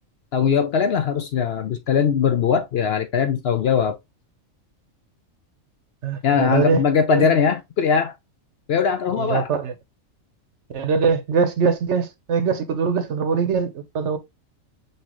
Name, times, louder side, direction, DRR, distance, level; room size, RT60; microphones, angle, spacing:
voice 1, 0.3-4.0 6.2-8.1 8.7-9.5, left 6 dB, 60° left, 0.7 m, -20 dB
voice 2, 6.0-6.8 7.1-7.4 9.2-9.7 10.7-14.2, right 5 dB, 65° right, 1.0 m, -22 dB
5.6 x 2.8 x 2.9 m
omnidirectional pair, 1.4 m